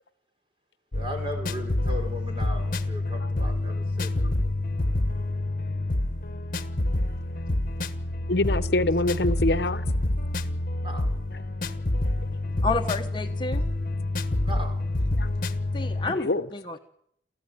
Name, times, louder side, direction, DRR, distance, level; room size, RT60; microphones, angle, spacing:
sound 1, 0.9-16.1, left 1 dB, 50° left, 1.2 m, -27 dB
voice 1, 0.9-4.5 10.8-11.1 14.4-14.8, left 1 dB, 30° right, 4.4 m, -37 dB
voice 2, 8.3-9.8 15.2-15.3 16.1-16.5, left 2 dB, 70° left, 0.9 m, -25 dB
voice 3, 12.6-13.6 15.7-16.8, left 3 dB, 25° left, 1.1 m, -30 dB
27.0 x 14.5 x 9.3 m
head